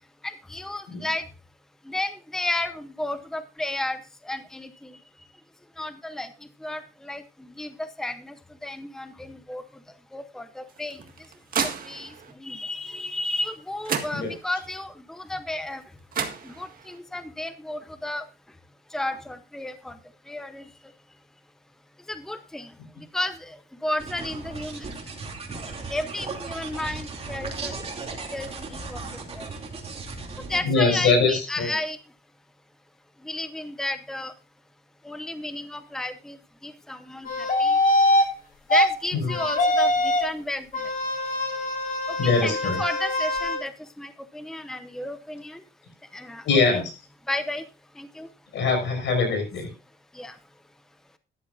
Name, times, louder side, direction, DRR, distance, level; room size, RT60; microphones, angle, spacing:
voice 1, 0.2-1.3 1.8-5.0 5.8-6.3 6.6-8.4 8.6-9.6 10.1-11.0 11.9-15.8 16.4-18.2 18.9-20.0 20.3-20.7 22.1-22.7 23.0-25.2 25.9-27.7 28.3-29.5 30.5-32.0 33.2-34.3 35.0-37.8 38.7-40.8 42.1-45.6 46.1-46.8 47.3-47.6 48.0-48.3 50.1-50.3, left 1 dB, ahead, 10 dB, 0.8 m, -33 dB
sound 1, 10.7-12.3 13.5-13.6 13.8-14.7 15.8-15.9 16.1-17.0, right 6 dB, 50° right, 1.8 m, -32 dB
sound 2, 24.0-30.6, right 3 dB, 30° right, 2.8 m, -36 dB
voice 2, 30.6-31.7 39.2-39.3 42.2-42.8 46.4-46.9 48.5-49.7, left 4 dB, 80° left, 4 dB, 6.1 m, -22 dB
sound 3, 37.2-38.3 38.7-38.9 39.3-40.3 40.7-43.6, left 1 dB, 45° left, 3.0 m, -23 dB
14.0 x 11.5 x 2.6 m, 0.29 s
cardioid pair, 140°, 19 cm